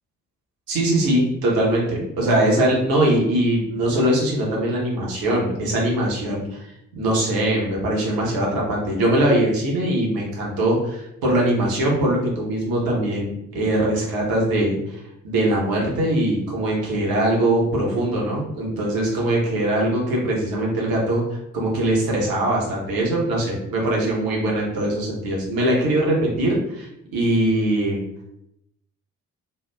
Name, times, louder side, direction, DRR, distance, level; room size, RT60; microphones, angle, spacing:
voice 1, 0.7-6.6 7.0-28.0, right 1 dB, 55° right, -3 dB, 1.0 m, -22 dB
3.0 x 2.2 x 2.2 m, 0.81 s
figure-of-eight pair, 40°, 44 cm